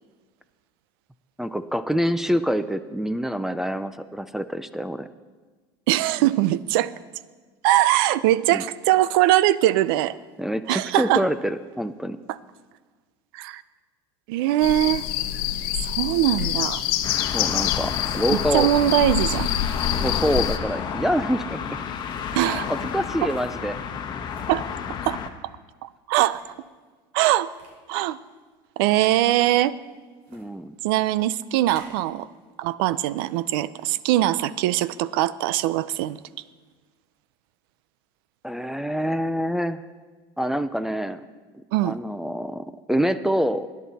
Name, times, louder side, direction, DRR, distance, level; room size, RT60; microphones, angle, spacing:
voice 1, 1.4-5.1 8.5-8.6 10.4-12.2 17.2-18.7 19.9-21.6 22.7-23.8 30.3-30.8 38.4-39.8 40.4-41.2 41.8-43.7, equal, 5° right, 12 dB, 0.4 m, -26 dB
voice 2, 5.9-6.9 7.6-10.1 10.7-11.2 13.3-13.6 14.3-15.1 15.8-16.8 18.5-19.5 22.3-22.7 23.2-23.3 24.5-24.6 25.1-25.2 25.8-26.4 27.1-27.5 27.9-28.2 28.8-29.7 30.8-32.3 32.6-36.2 41.7-41.9, right 14 dB, 80° right, 17 dB, 0.5 m, -21 dB
sound 1, 14.6-20.6, left 12 dB, 75° left, 0.9 m, -26 dB
sound 2, 15.1-15.3 16.2-16.6 17.4-17.6 18.7-19.1 20.2-20.6 22.0-22.3 23.2-23.5 24.3-24.5 25.2-25.3 26.2-26.5 27.5-27.8 28.9-29.2 30.2-30.5 31.5-32.0, right 3 dB, 65° right, 3.8 m, -50 dB
sound 3, 17.0-25.3, left 7 dB, 40° left, 1.2 m, -31 dB
19.0 x 10.5 x 4.1 m, 1.4 s
supercardioid pair, 125°, 12 cm